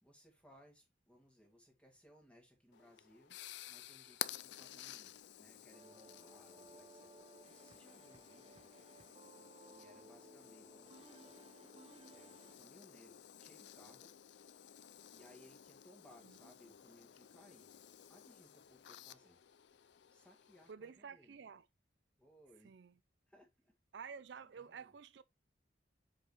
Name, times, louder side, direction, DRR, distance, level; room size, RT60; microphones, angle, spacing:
voice 1, 0.0-3.4 3.7-7.2 7.5-8.9 9.6-11.4 12.1-14.2 15.1-17.8 18.1-19.4 20.1-21.4 22.2-22.7 23.3-23.8 24.5-24.9, equal, 5° left, 1.9 m, -65 dB
sound 1, 2.7-20.7, left 11 dB, 70° left, 0.4 m, -53 dB
sound 2, 5.7-12.6, right 2 dB, 30° right, 0.7 m, -60 dB
voice 2, 20.7-21.7 22.6-23.0 23.9-25.2, right 6 dB, 70° right, 0.4 m, -51 dB
7.8 x 5.1 x 2.9 m
head